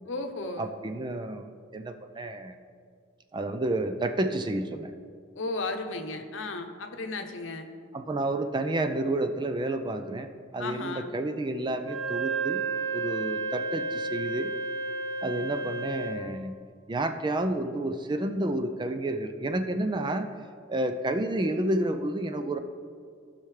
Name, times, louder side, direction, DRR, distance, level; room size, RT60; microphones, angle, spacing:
voice 1, 0.1-0.7 5.4-7.7 10.6-11.1, left 3 dB, 70° left, 5 dB, 0.8 m, -34 dB
voice 2, 0.6-2.6 3.3-4.9 7.9-12.6 12.9-14.5 15.2-16.5 16.9-20.3 20.7-22.6, right 1 dB, 25° right, 8 dB, 0.4 m, -30 dB
Wind instrument woodwind instrument, 11.8-16.3, right 3 dB, 85° right, 1.1 m, -32 dB
15.5 x 5.7 x 3.2 m, 2.2 s
head